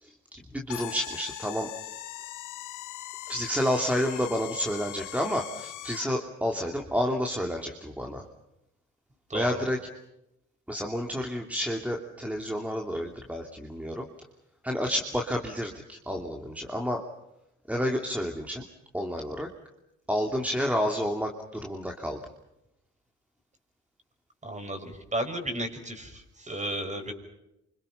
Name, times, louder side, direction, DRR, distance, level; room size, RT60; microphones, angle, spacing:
voice 1, 0.0-1.7 3.3-8.3 9.3-9.8 10.7-14.1 14.6-17.0 17.7-18.6 18.9-19.5 20.1-22.2, equal, 5° right, 2 dB, 2.9 m, -30 dB
sound 1, 0.7-6.3, left 15 dB, 85° left, 1.1 m, -40 dB
voice 2, 9.3-9.6 24.4-27.1, right 1 dB, 25° right, 6 dB, 6.3 m, -33 dB
28.0 x 26.0 x 5.8 m, 0.86 s
cardioid pair, 90°, 30 cm